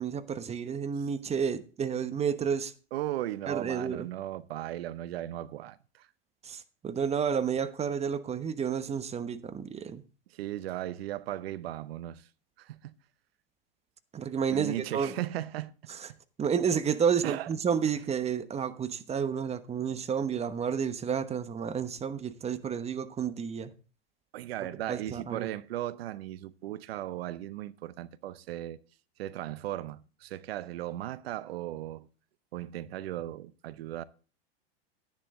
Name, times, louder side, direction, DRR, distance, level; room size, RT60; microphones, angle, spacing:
voice 1, 0.0-2.7 3.5-4.1 6.4-10.0 14.1-15.1 15.9-16.1 16.4-23.7 24.9-25.5, right 7 dB, 20° right, 1.0 m, -31 dB
voice 2, 2.9-6.1 10.3-12.3 12.6-12.9 14.5-15.7 17.2-17.5 24.3-28.8 29.2-32.1 32.5-34.0, right 14 dB, 75° right, 0.8 m, -37 dB
10.5 x 10.0 x 3.7 m
hypercardioid pair, 105°, 30 cm